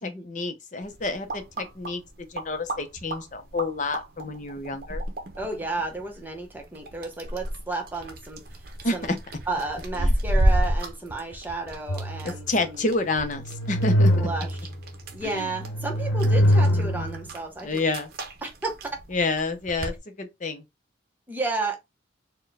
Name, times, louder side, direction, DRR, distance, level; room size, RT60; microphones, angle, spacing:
voice 1, 0.0-5.0 8.8-9.2 10.0-10.1 12.5-14.1 15.2-15.4 17.6-18.1 19.1-20.6, left 3 dB, 40° left, 0.6 m, -29 dB
sound 1, 0.8-20.0, right 1 dB, 55° right, 0.7 m, -32 dB
voice 2, 5.4-9.1 9.5-12.9 14.2-14.6 15.1-17.9 18.4-18.9 21.3-21.8, right 3 dB, 10° right, 0.8 m, -32 dB
sound 2, 11.9-12.8 13.2-14.9 15.4-17.3, equal, 85° left, 0.9 m, -23 dB
4.4 x 2.2 x 3.3 m
head